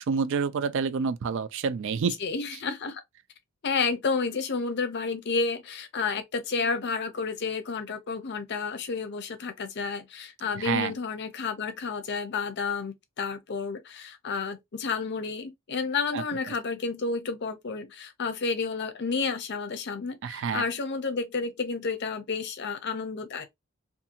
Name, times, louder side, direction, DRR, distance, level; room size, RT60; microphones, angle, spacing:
voice 1, 0.0-2.2 10.6-10.9 16.1-16.2 20.2-20.6, right 5 dB, 60° right, 0.3 m, -28 dB
voice 2, 2.2-3.0 3.6-23.5, left 4 dB, 50° left, 0.6 m, -31 dB
2.7 x 2.4 x 2.7 m
head